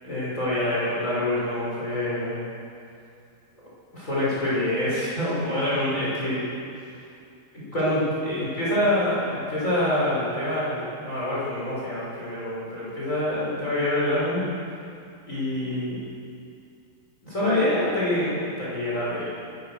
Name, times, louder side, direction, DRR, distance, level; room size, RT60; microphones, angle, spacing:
voice 1, 0.0-2.4 3.9-6.4 7.5-14.4 15.2-16.0 17.2-19.3, left 1 dB, 15° left, -8 dB, 6.7 m, -26 dB
27.0 x 15.0 x 6.5 m, 2.5 s
omnidirectional pair, 4.8 m